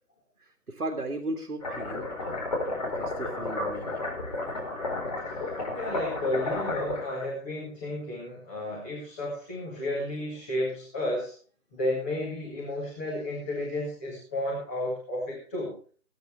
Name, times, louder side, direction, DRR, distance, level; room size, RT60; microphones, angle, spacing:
voice 1, 0.4-2.1 2.9-4.0, right 2 dB, 65° right, 4 dB, 1.9 m, -36 dB
sound 1, 1.6-7.2, left 2 dB, 25° left, 4.2 m, -32 dB
voice 2, 5.7-11.3 11.7-15.7, left 1 dB, 10° left, -6 dB, 1.6 m, -32 dB
19.5 x 9.3 x 3.4 m, 0.41 s
figure-of-eight pair, 160°, 45 cm